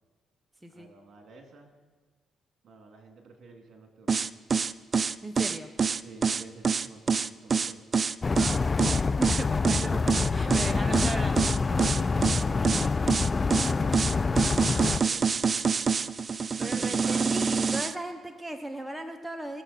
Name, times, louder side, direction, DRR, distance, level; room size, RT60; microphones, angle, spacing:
voice 1, 0.7-1.7 2.6-4.3 6.0-7.8 10.4-10.9 11.7-15.7 16.5-17.3, right 3 dB, 60° right, 3 dB, 2.5 m, -47 dB
sound 1, 4.1-17.9, right 5 dB, 40° right, 0.4 m, -26 dB
voice 2, 5.2-5.7 8.3-8.7 9.1-10.0 10.3-11.4 16.6-19.6, right 1 dB, 10° right, 4 dB, 0.9 m, -36 dB
sound 2, 8.2-15.0, left 4 dB, 30° left, 0.3 m, -26 dB
21.5 x 7.3 x 4.2 m, 1.4 s
cardioid pair, 90°, 0 cm